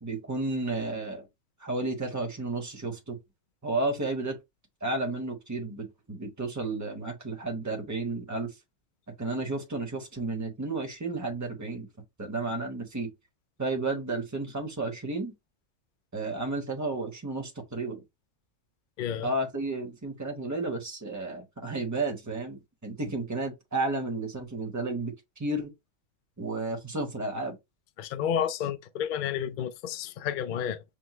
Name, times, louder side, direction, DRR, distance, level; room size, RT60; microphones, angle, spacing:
voice 1, 0.0-1.3 1.6-3.2 3.6-4.4 4.8-8.5 9.2-11.9 12.2-13.1 13.6-15.3 16.1-18.0 19.2-25.7 26.4-27.6, right 2 dB, 15° right, 1.0 m, -32 dB
voice 2, 19.0-19.3 28.0-30.8, left 9 dB, 75° left, 0.4 m, -31 dB
6.2 x 2.1 x 3.0 m
omnidirectional pair, 1.4 m